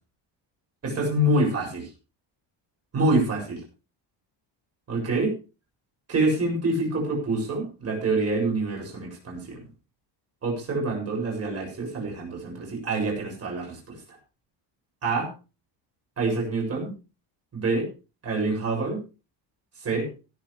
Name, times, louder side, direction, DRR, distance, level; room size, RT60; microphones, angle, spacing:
voice 1, 0.8-1.9 2.9-3.6 4.9-5.3 6.1-9.6 10.4-14.0 15.0-15.3 16.2-16.9 17.5-17.9 18.2-19.0 19.8-20.1, right 2 dB, 30° right, 0 dB, 7.3 m, -26 dB
18.0 x 10.5 x 3.4 m, 0.33 s
cardioid pair, 170°, 46 cm